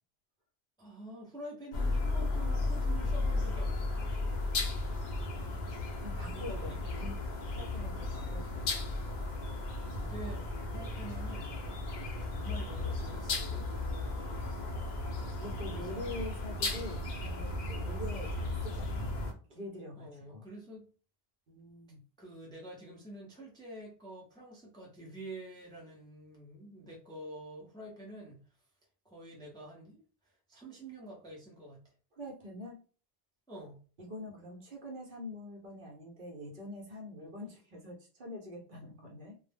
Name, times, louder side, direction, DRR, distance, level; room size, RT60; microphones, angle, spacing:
voice 1, 0.8-4.0 6.3-7.1 10.0-11.6 12.2-13.7 15.7-16.1 20.0-20.9 22.2-28.4 29.0-31.8 33.5-33.8, right 1 dB, 5° left, -3 dB, 0.5 m, -47 dB
sound 1, 1.7-19.3, left 2 dB, 55° left, 0.6 m, -35 dB
voice 2, 6.0-7.2 7.5-8.7 14.1-14.7 15.4-20.5 21.5-22.0 32.1-32.8 34.0-39.4, left 1 dB, 55° right, -1 dB, 0.8 m, -45 dB
2.1 x 2.0 x 3.3 m, 0.38 s
omnidirectional pair, 1.1 m